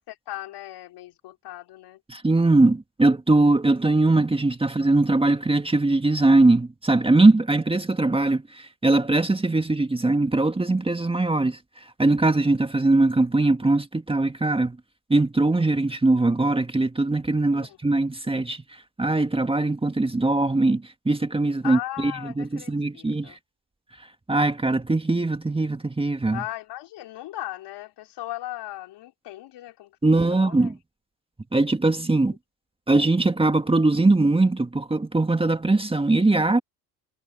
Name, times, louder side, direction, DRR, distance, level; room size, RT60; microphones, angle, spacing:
voice 1, 0.3-2.0 17.5-17.8 21.6-23.4 26.3-30.0 30.3-30.7 32.3-32.4, left 15 dB, 60° left, 4.7 m, -37 dB
voice 2, 2.1-14.8 15.1-18.6 19.0-22.1 22.4-23.4 24.3-26.4 30.0-30.7 31.5-32.3 32.9-36.6, right 2 dB, 10° right, 2.0 m, -21 dB
hypercardioid pair, 70°, 47 cm